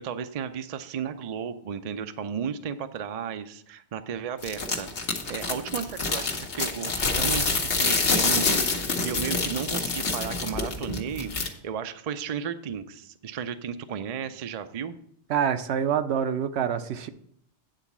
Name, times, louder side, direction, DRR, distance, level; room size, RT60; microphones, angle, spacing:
voice 1, 0.0-14.9, right 7 dB, 50° right, 10 dB, 0.5 m, -34 dB
sound 1, 4.4-11.5, left 4 dB, 75° left, 1.4 m, -27 dB
voice 2, 15.3-17.1, right 8 dB, 70° right, 10 dB, 0.9 m, -26 dB
9.1 x 4.0 x 7.1 m, 0.68 s
omnidirectional pair, 1.2 m